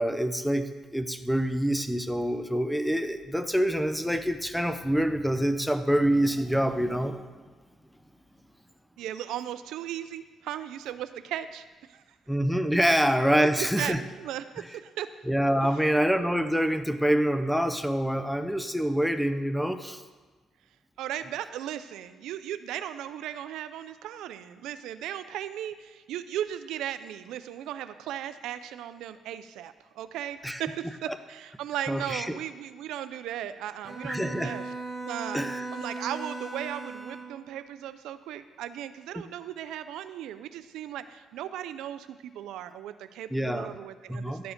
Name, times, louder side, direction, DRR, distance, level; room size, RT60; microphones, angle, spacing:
voice 1, 0.0-7.2 12.3-14.0 15.3-20.0 30.4-30.6 31.9-32.4 34.0-34.5 35.3-35.6 43.3-43.7 44.1-44.4, equal, ahead, 9 dB, 0.6 m, -26 dB
voice 2, 9.0-12.0 13.4-15.1 15.6-15.8 21.0-34.7 35.0-35.4 35.7-44.5, right 11 dB, 90° right, 12 dB, 0.4 m, -37 dB
Bowed string instrument, 33.8-37.5, right 3 dB, 25° right, 1.1 m, -37 dB
12.0 x 4.8 x 5.1 m, 1.3 s
cardioid pair, 90°, 0 cm